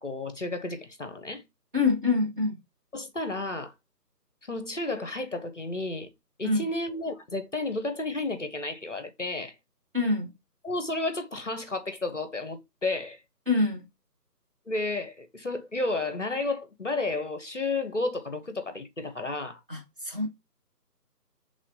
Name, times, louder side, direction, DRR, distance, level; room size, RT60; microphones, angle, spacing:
voice 1, 0.0-1.4 2.9-3.7 4.4-6.1 6.4-9.6 10.6-13.2 14.7-19.6, left 2 dB, 50° left, 0.5 m, -32 dB
voice 2, 1.7-2.5 6.4-6.6 9.9-10.3 13.5-13.9 19.7-20.3, left 3 dB, 35° right, 1.0 m, -25 dB
5.2 x 3.2 x 2.5 m
figure-of-eight pair, 160°, 48 cm